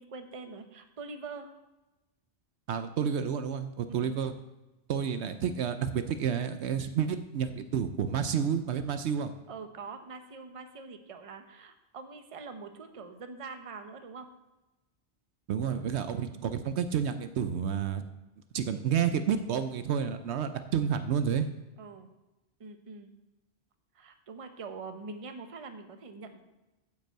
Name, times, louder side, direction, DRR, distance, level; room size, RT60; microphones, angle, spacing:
voice 1, 0.0-1.5 3.9-4.1 9.5-14.3 16.1-16.4 21.8-22.1 22.6-23.1 23.9-26.4, right 4 dB, 35° right, 7 dB, 0.7 m, -44 dB
voice 2, 2.7-4.3 4.9-9.3 15.5-18.0 18.5-21.5, right 7 dB, 70° right, 9 dB, 0.9 m, -30 dB
9.1 x 5.4 x 7.6 m, 1.0 s
omnidirectional pair, 1.2 m